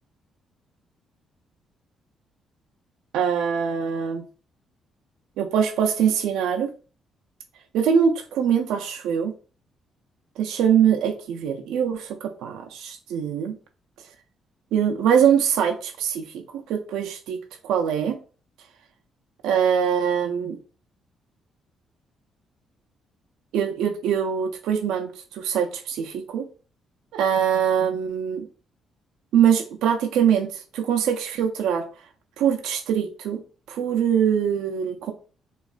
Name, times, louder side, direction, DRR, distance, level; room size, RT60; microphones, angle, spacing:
voice 1, 3.1-4.3 5.4-6.7 7.7-9.3 10.4-13.6 14.7-17.4 17.6-18.2 19.4-20.6 23.5-26.5 27.1-28.5 29.3-31.8 32.4-33.4 33.7-35.1, right 8 dB, 90° right, 3 dB, 0.4 m, -23 dB
2.8 x 2.3 x 2.4 m, 0.38 s
cardioid pair, 90°, 0 cm